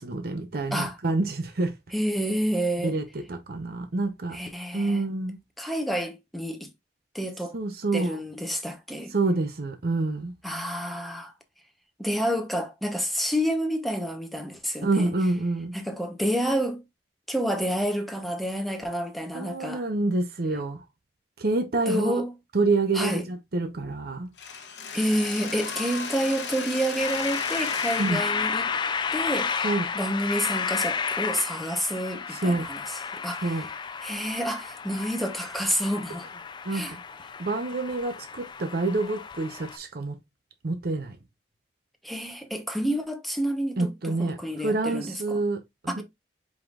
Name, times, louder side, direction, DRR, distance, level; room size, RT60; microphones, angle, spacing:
voice 1, 0.0-1.7 2.8-4.4 4.7-5.4 7.5-8.2 9.1-10.3 14.8-15.7 19.3-20.8 21.4-22.2 22.5-24.3 28.0-28.2 29.6-29.9 32.3-32.7 33.4-33.7 36.6-37.0 37.4-40.2 40.6-41.2 43.8-46.0, right 2 dB, 60° right, 0.7 m, -27 dB
voice 2, 1.9-3.0 4.3-5.1 5.6-6.7 7.1-7.6 7.9-9.1 10.4-11.3 12.0-15.1 15.7-16.8 17.3-19.8 21.9-22.3 22.9-23.3 24.9-28.7 29.1-29.7 29.9-33.6 34.0-36.3 36.7-36.9 42.0-45.4 45.9-46.0, equal, ahead, 0.8 m, -29 dB
Mechanisms, 24.4-30.2, left 5 dB, 80° left, 0.9 m, -37 dB
sound 1, 27.0-39.8, left 6 dB, 25° left, 0.3 m, -32 dB
4.9 x 3.8 x 2.3 m
head